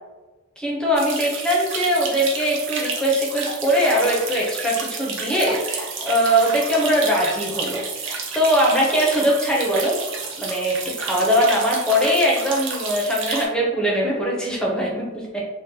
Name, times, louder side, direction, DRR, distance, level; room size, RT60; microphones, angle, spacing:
voice 1, 0.6-9.9 10.4-15.4, equal, 5° left, -4 dB, 0.5 m, -21 dB
sound 1, 0.9-13.4, right 4 dB, 55° right, 0.6 m, -30 dB
2.7 x 2.1 x 3.6 m, 1.2 s
head